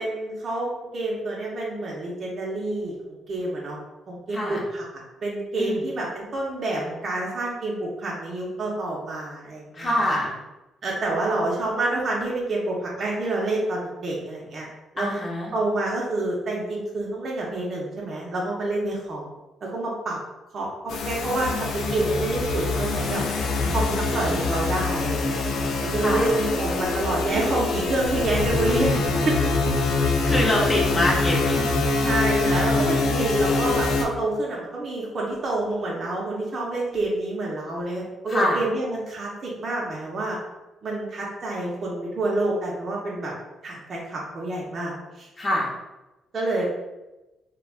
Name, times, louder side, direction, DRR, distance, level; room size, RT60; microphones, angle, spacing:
voice 1, 0.0-3.8 4.1-10.2 10.8-14.7 14.9-15.1 15.5-19.3 19.6-20.2 20.5-23.2 23.7-25.4 25.8-29.4 32.0-40.4 40.8-43.3 43.6-45.3 46.3-46.7, right 2 dB, 45° right, -4 dB, 0.6 m, -28 dB
voice 2, 9.7-10.3 15.0-15.5 23.6-24.3 26.0-26.3 30.2-32.1 38.3-38.6 45.4-45.7, left 1 dB, 25° left, -4 dB, 0.7 m, -25 dB
sound 1, 20.9-34.0, left 3 dB, 80° left, 0.4 m, -24 dB
3.1 x 2.2 x 2.4 m, 1.0 s
cardioid pair, 90°, 0 cm